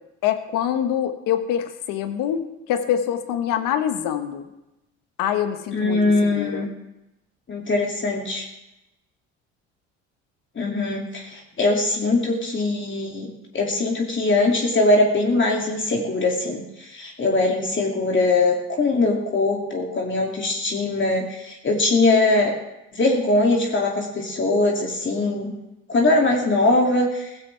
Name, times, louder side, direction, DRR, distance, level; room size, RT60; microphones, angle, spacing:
voice 1, 0.2-2.4 2.7-4.4 5.2-6.7, left 9 dB, 70° left, 8 dB, 1.5 m, -25 dB
voice 2, 5.7-6.7 7.5-8.4 10.6-22.5 22.9-25.6 25.9-27.3, left 2 dB, 35° left, -1 dB, 2.7 m, -21 dB
17.0 x 15.0 x 3.5 m, 0.92 s
supercardioid pair, 70°, 34 cm